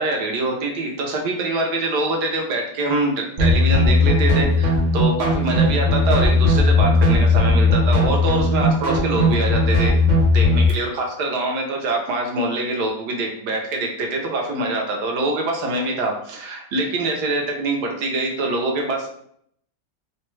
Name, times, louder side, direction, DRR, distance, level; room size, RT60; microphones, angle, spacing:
voice 1, 0.0-9.9 10.3-19.1, right 2 dB, 75° right, 1 dB, 1.2 m, -24 dB
sound 1, 3.4-10.7, left 2 dB, 55° right, 0.5 m, -17 dB
3.1 x 2.2 x 3.0 m, 0.67 s
omnidirectional pair, 1.8 m